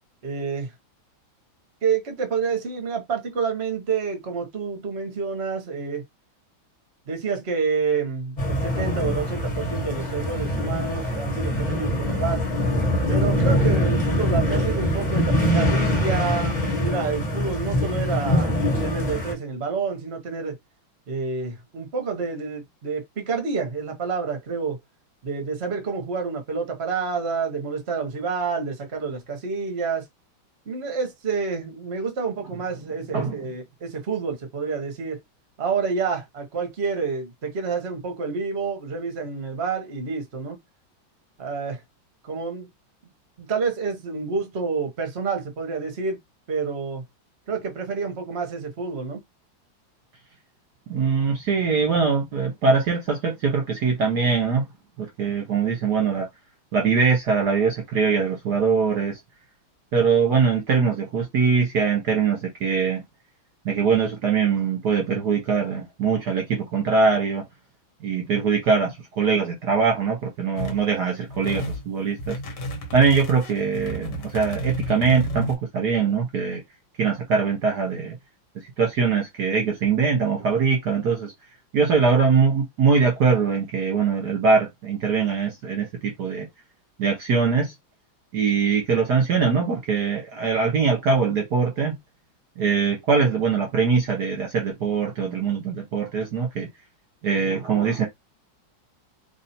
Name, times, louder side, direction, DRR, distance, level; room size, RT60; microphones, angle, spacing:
voice 1, 0.2-0.7 1.8-6.0 7.1-12.4 13.1-20.5 21.1-24.8 25.2-30.0 30.7-35.2 35.6-40.6 41.4-41.8 42.2-42.7 43.4-46.2 46.5-47.0 47.5-49.2, right 5 dB, 35° right, 1.3 m, -28 dB
sound 1, 8.4-19.3, left 1 dB, 25° left, 1.3 m, -23 dB
voice 2, 50.9-54.6 55.0-56.3 56.7-59.2 59.9-63.0 63.6-67.4 68.0-72.4 72.9-76.6 77.0-78.2 78.5-81.3 81.7-86.5 87.0-87.7 88.3-92.0 92.6-96.7 97.2-98.1, right 5 dB, 60° right, 1.4 m, -22 dB
sound 2, 70.6-70.8 71.3-71.8 72.2-75.5, equal, 60° left, 1.8 m, -32 dB
3.4 x 2.6 x 4.2 m
omnidirectional pair, 2.2 m